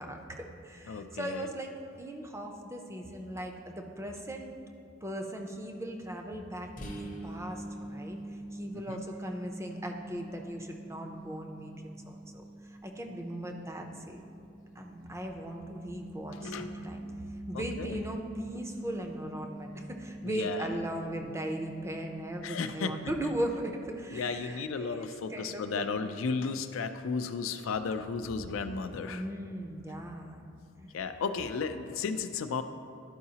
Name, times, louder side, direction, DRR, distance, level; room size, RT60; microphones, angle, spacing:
voice 1, 0.0-4.5 5.0-14.2 14.7-17.0 17.5-26.2 29.1-30.4 30.8-31.0, right 1 dB, 15° right, 2 dB, 0.5 m, -38 dB
voice 2, 0.9-1.5 8.9-9.0 16.3-17.0 17.5-18.0 20.2-20.8 22.4-22.9 24.1-29.2 30.9-32.6, left 5 dB, 70° left, 9 dB, 0.4 m, -34 dB
sound 1, 6.8-24.3, right 1 dB, 40° left, 0.7 m, -45 dB
11.5 x 4.7 x 2.8 m, 2.5 s
head